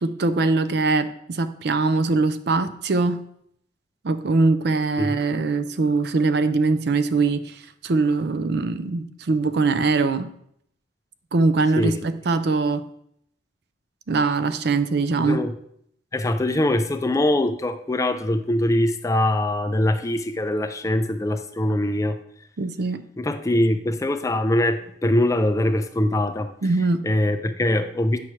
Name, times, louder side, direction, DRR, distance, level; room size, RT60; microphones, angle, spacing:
voice 1, 0.0-3.2 4.0-10.3 11.3-12.8 14.1-15.4 22.6-23.0 26.6-27.0, right 3 dB, 60° right, 11 dB, 0.5 m, -22 dB
voice 2, 15.2-15.5 16.1-22.2 23.2-26.5 27.0-28.2, left 1 dB, 15° left, 8 dB, 0.4 m, -22 dB
8.8 x 5.8 x 3.2 m, 0.70 s
head